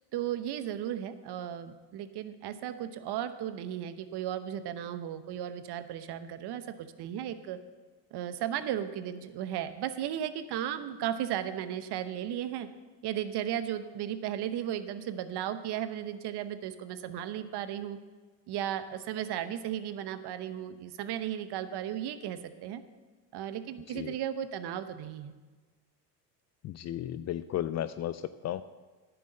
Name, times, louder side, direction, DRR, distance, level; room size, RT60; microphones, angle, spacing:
voice 1, 0.1-7.6 8.1-12.7 13.0-18.0 18.5-22.8 23.3-25.3, right 10 dB, 50° right, 11 dB, 1.0 m, -35 dB
voice 2, 26.6-28.6, left 12 dB, 35° left, 14 dB, 0.4 m, -34 dB
10.5 x 7.0 x 7.7 m, 1.3 s
hypercardioid pair, 75°, 49 cm